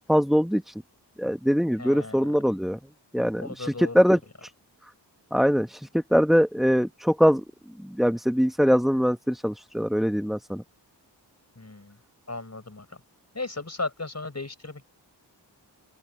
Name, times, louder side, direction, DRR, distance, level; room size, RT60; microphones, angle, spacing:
voice 1, 0.1-0.7 1.2-2.8 3.1-4.2 5.3-7.4 7.9-10.6, equal, ahead, 1.2 m, -22 dB
voice 2, 1.8-2.4 3.4-4.2 11.6-12.0 12.3-12.9 13.3-14.9, left 3 dB, 35° left, 5.6 m, -36 dB
open air
wide cardioid pair, 90°, 43 cm